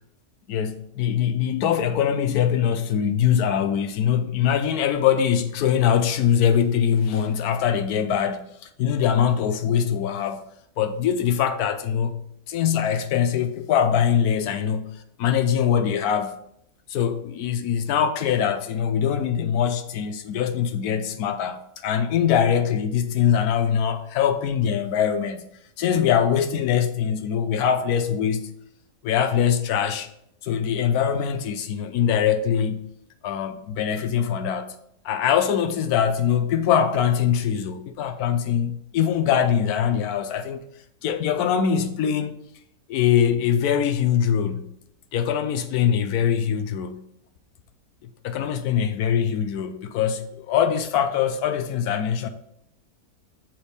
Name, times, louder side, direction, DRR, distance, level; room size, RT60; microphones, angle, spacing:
voice 1, 0.5-8.5 8.8-10.4 10.8-12.2 12.5-14.9 15.2-16.4 16.9-25.5 25.8-28.5 29.0-30.1 30.4-32.8 33.2-34.7 35.0-40.6 41.0-42.4 42.9-44.7 45.1-47.0 48.2-52.3, left 8 dB, 80° left, 1.1 m, -22 dB
7.2 x 3.4 x 4.1 m
omnidirectional pair, 1.6 m